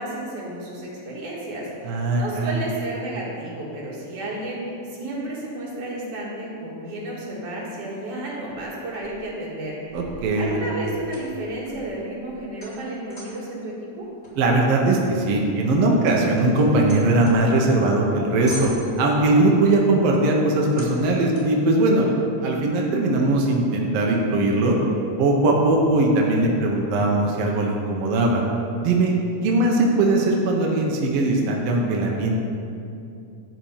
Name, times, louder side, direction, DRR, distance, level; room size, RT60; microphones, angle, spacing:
voice 1, 0.0-9.8 10.4-14.1, right 1 dB, 80° right, -5 dB, 3.5 m, -32 dB
voice 2, 1.8-2.6 9.9-10.6 14.4-18.7 19.0-22.1 22.4-24.8 25.2-28.4 28.8-29.1 29.4-32.4, right 2 dB, 65° right, -1 dB, 1.8 m, -20 dB
sound 1, 8.5-9.4 9.9-13.5 14.2-17.8 18.1-18.2 18.5-19.3 20.7-21.6, equal, 15° left, 2.2 m, -41 dB
11.5 x 4.4 x 7.1 m, 2.6 s
omnidirectional pair, 3.5 m